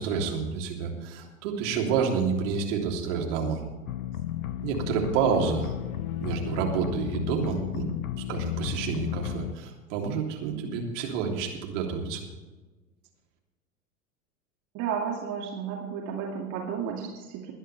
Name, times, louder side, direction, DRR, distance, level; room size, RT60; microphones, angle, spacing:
voice 1, 0.0-3.6 4.6-5.8 6.2-7.9 8.3-12.2, right 6 dB, 55° right, 1 dB, 3.2 m, -29 dB
sound 1, 3.9-9.5, left 12 dB, 70° left, 0.9 m, -33 dB
voice 2, 14.7-17.5, right 7 dB, 40° right, -1 dB, 2.3 m, -32 dB
21.5 x 10.0 x 3.4 m, 1.2 s
figure-of-eight pair, 90°, 44 cm